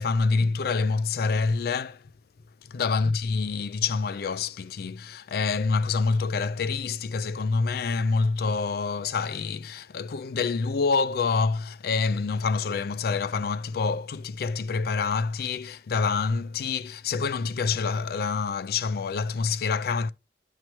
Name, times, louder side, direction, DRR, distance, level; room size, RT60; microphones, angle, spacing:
voice 1, 0.0-2.1 2.6-20.1, left 4 dB, 55° left, 0.4 m, -27 dB
10.5 x 4.7 x 2.9 m
head